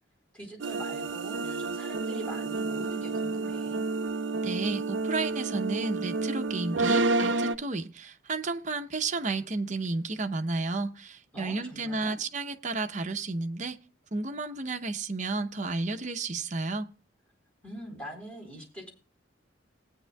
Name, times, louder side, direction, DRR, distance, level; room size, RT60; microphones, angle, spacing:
voice 1, 0.3-3.8 11.3-12.1 17.6-18.9, right 1 dB, 5° left, 4.1 m, -44 dB
sound 1, 0.6-7.6, right 3 dB, 75° right, 0.6 m, -30 dB
voice 2, 4.4-13.8 14.1-16.9, right 3 dB, 40° right, 0.8 m, -32 dB
19.0 x 9.2 x 2.3 m
head